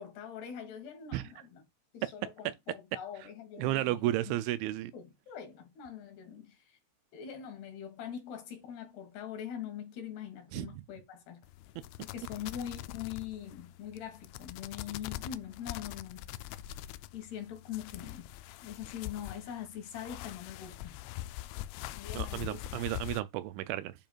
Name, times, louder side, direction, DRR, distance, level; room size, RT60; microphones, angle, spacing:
voice 1, 0.0-1.6 1.9-4.4 4.9-6.8 7.1-11.4 12.0-16.3 17.1-18.3 18.6-21.0 21.9-22.6, left 9 dB, 65° left, 3.5 m, -43 dB
voice 2, 3.6-4.9 10.5-10.7 22.1-23.9, right 15 dB, 85° right, 2.8 m, -32 dB
sound 1, 11.4-23.2, left 15 dB, 85° left, 2.7 m, -43 dB
8.8 x 5.1 x 2.4 m
omnidirectional pair, 5.5 m